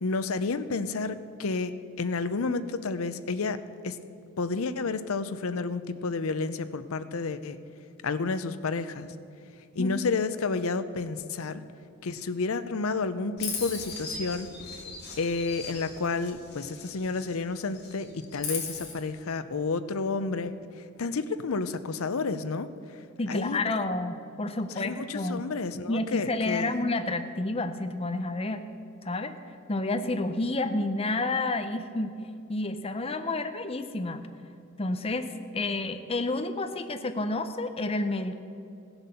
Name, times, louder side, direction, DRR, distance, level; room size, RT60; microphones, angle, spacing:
voice 1, 0.0-4.0 4.4-7.6 8.0-9.1 9.7-11.6 12.0-14.5 15.2-20.5 21.0-22.7 23.3-23.8 24.8-26.7, left 4 dB, 75° left, 12 dB, 0.6 m, -30 dB
voice 2, 9.8-10.1 23.2-25.5 25.9-28.7 29.0-29.3 29.7-32.2 32.5-34.2 34.8-35.3 35.5-38.4, left 2 dB, 25° left, 8 dB, 0.6 m, -30 dB
Chirp tweet, 13.4-17.4 17.7-18.9, left 5 dB, 45° left, 3.0 m, -38 dB
16.0 x 8.0 x 6.8 m, 2.5 s
head